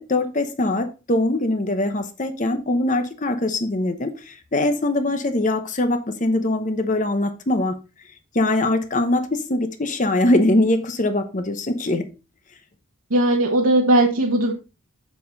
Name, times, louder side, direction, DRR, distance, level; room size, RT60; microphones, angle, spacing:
voice 1, 0.0-7.8 8.3-12.1, left 1 dB, 35° left, 0.9 m, -22 dB
voice 2, 13.1-14.5, right 1 dB, 80° right, 1.4 m, -18 dB
7.2 x 7.1 x 4.0 m
head